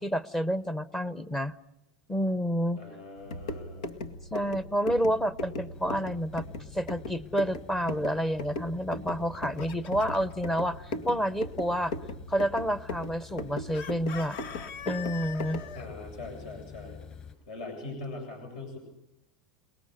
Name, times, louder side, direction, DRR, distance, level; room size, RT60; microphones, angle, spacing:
voice 1, 0.0-1.5 2.1-2.8 4.3-6.4 6.7-11.9 12.3-14.4 14.8-15.6, equal, 10° left, 15 dB, 0.9 m, -29 dB
voice 2, 2.8-3.9 15.7-17.0 17.5-18.8, left 3 dB, 70° left, 4 dB, 7.8 m, -41 dB
sound 1, 3.2-15.8, left 2 dB, 90° left, 2.0 m, -39 dB
sound 2, 5.7-17.3, left 6 dB, 30° left, 5.1 m, -49 dB
Chicken rooster, 9.1-10.3 13.7-15.9, left 8 dB, 50° left, 1.2 m, -42 dB
29.0 x 19.5 x 6.7 m, 0.86 s
supercardioid pair, 135°, 4 cm